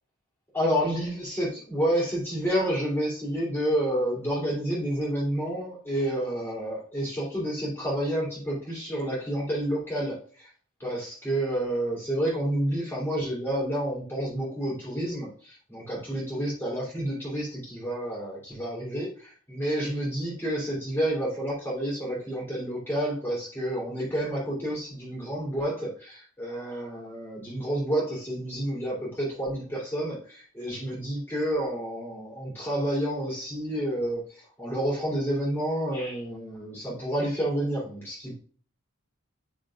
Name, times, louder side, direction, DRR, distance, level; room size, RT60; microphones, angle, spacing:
voice 1, 0.5-10.5 10.8-38.4, right 1 dB, 10° left, -6 dB, 3.1 m, -29 dB
10.5 x 5.1 x 2.5 m, 0.44 s
head